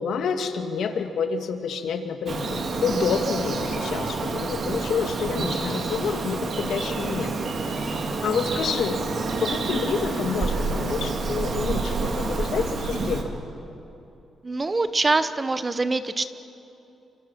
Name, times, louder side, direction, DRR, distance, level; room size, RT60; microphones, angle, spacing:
voice 1, 0.0-7.4 7.8-9.0 9.4-13.4, left 6 dB, 70° left, 6 dB, 1.8 m, -28 dB
Bird vocalization bird call bird song, 2.3-13.2, right 3 dB, 50° right, 2.6 m, -28 dB
voice 2, 14.4-16.3, right 3 dB, 25° right, 12 dB, 0.9 m, -24 dB
28.5 x 25.5 x 5.9 m, 2.8 s
cardioid pair, 135°, 0 cm